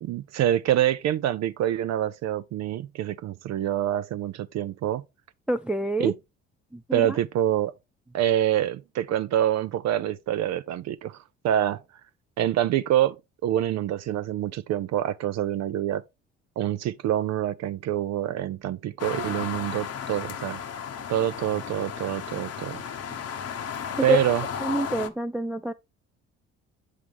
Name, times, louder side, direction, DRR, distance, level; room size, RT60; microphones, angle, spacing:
voice 1, 0.0-5.0 6.0-6.1 6.9-7.7 8.1-11.2 11.4-11.8 12.4-16.0 16.6-20.6 21.1-22.8 24.0-24.4, right 11 dB, 55° right, 0.5 m, -26 dB
voice 2, 5.5-6.1 6.7-7.2 23.1-23.2 24.0-24.2 24.6-25.7, right 1 dB, 5° right, 0.4 m, -27 dB
sound 1, 19.0-25.1, left 7 dB, 50° left, 0.9 m, -34 dB
7.6 x 4.8 x 3.4 m
hypercardioid pair, 55°, 32 cm